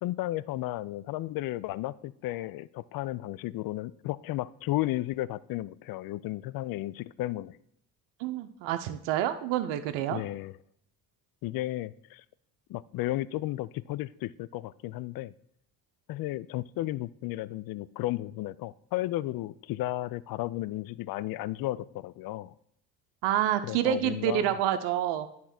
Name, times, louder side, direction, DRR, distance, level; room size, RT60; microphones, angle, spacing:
voice 1, 0.0-7.6 10.1-10.5 11.4-12.2 12.7-15.3 16.1-22.5 23.6-24.5, left 16 dB, 55° left, 19 dB, 0.5 m, -34 dB
voice 2, 8.2-10.2 23.2-25.3, right 11 dB, 70° right, 9 dB, 0.7 m, -28 dB
9.9 x 3.7 x 5.9 m, 0.71 s
hypercardioid pair, 55°, 44 cm